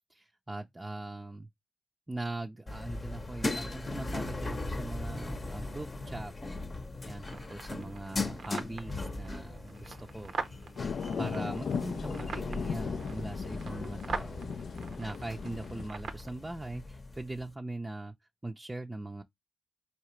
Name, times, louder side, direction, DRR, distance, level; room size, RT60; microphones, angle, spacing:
voice 1, 0.1-1.5 2.1-6.3 7.0-10.3 11.2-14.5 15.0-18.1 18.4-19.2, right 2 dB, 20° right, 0.5 m, -41 dB
sound 1, 2.7-17.5, left 2 dB, 40° left, 0.8 m, -39 dB
sound 2, 7.2-16.3, right 5 dB, 70° right, 0.6 m, -44 dB
sound 3, 10.8-15.9, left 6 dB, 70° left, 0.3 m, -37 dB
4.7 x 2.8 x 3.0 m
supercardioid pair, 40°, 0 cm